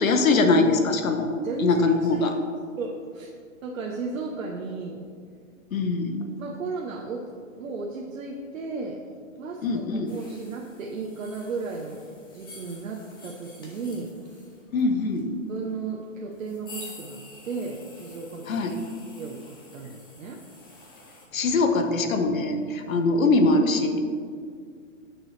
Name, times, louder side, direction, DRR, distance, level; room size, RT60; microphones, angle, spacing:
voice 1, 0.0-1.3 1.6-2.3 5.7-6.2 9.6-10.1 14.7-15.3 18.5-18.8 21.3-24.0, left 3 dB, 85° left, 5 dB, 1.1 m, -22 dB
voice 2, 1.4-2.3 2.8-3.3 3.6-5.0 6.4-7.3 7.6-9.0 9.4-12.0 12.3-14.5 15.5-18.6 19.1-20.4 22.9-23.1, right 4 dB, 75° right, 0 dB, 1.0 m, -34 dB
sound 1, 10.1-21.3, left 2 dB, 20° left, 0.5 m, -49 dB
9.1 x 6.4 x 3.3 m, 2.1 s
hypercardioid pair, 165°, 40 cm